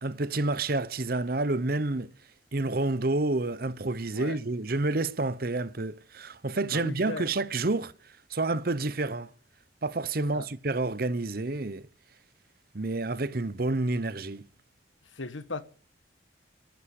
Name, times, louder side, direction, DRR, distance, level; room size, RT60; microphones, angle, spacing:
voice 1, 0.0-2.1 2.5-7.9 8.3-9.3 9.8-11.8 12.7-14.4, right 2 dB, 50° right, 0.8 m, -29 dB
voice 2, 6.7-7.3 10.3-10.5 15.1-15.6, left 3 dB, 85° left, 1.5 m, -37 dB
15.0 x 11.0 x 8.3 m
head